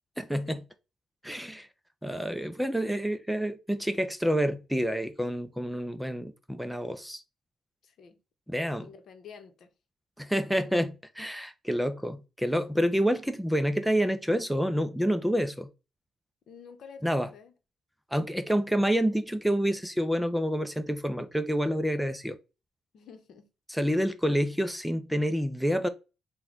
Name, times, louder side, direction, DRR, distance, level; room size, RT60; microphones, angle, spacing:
voice 1, 0.2-0.6 1.2-1.7 2.0-7.2 8.5-8.9 10.2-15.7 17.0-17.3 18.1-22.4 23.7-25.9, equal, ahead, 0.5 m, -28 dB
voice 2, 7.8-8.2 8.8-9.7 16.5-17.5 22.9-23.5, left 6 dB, 65° left, 0.8 m, -49 dB
4.0 x 2.2 x 4.5 m
cardioid pair, 90°, 0 cm